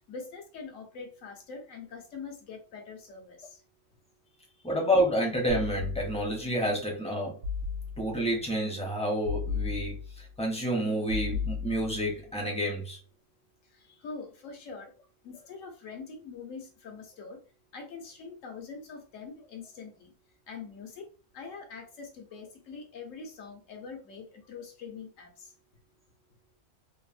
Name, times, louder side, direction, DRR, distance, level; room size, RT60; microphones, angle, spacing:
voice 1, 0.0-3.5 14.0-14.9 15.2-17.4 17.7-20.1 20.5-21.0 21.3-25.5, left 5 dB, 80° left, 1.2 m, -44 dB
voice 2, 4.6-7.4 8.0-13.0, equal, 10° left, 0.5 m, -29 dB
sound 1, 5.5-6.5 7.4-8.3 9.2-10.3 11.1-12.2, left 6 dB, 90° right, 1.0 m, -35 dB
2.9 x 2.0 x 2.4 m
omnidirectional pair, 1.3 m